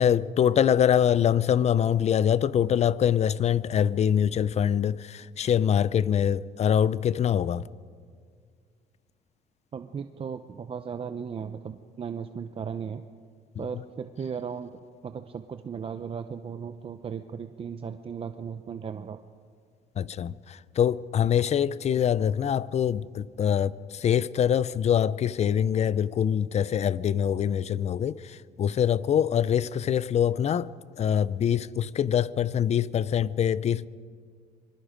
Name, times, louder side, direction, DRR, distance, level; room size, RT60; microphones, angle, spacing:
voice 1, 0.0-7.6 20.0-30.7 31.0-33.9, left 9 dB, 40° left, 0.6 m, -24 dB
voice 2, 9.7-13.0 13.6-19.2, right 6 dB, 35° right, 0.7 m, -36 dB
25.5 x 22.5 x 5.2 m
cardioid pair, 110°, 17 cm